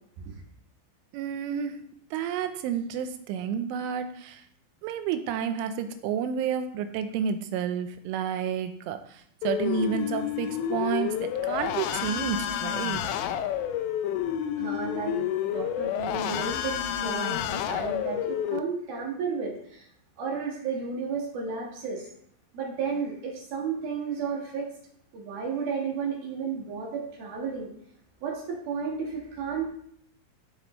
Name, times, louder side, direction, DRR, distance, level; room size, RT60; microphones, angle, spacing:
voice 1, 1.1-1.8 2.1-4.4 4.8-9.0 9.4-13.0, right 7 dB, 85° right, 8 dB, 3.3 m, -30 dB
sound 1, 9.4-18.6, left 10 dB, 80° left, 2.6 m, -30 dB
voice 2, 14.6-19.9 20.2-22.1 22.5-24.7 25.1-27.7 28.2-29.7, right 5 dB, 60° right, -1 dB, 3.1 m, -33 dB
15.0 x 6.9 x 3.2 m, 0.67 s
omnidirectional pair, 5.6 m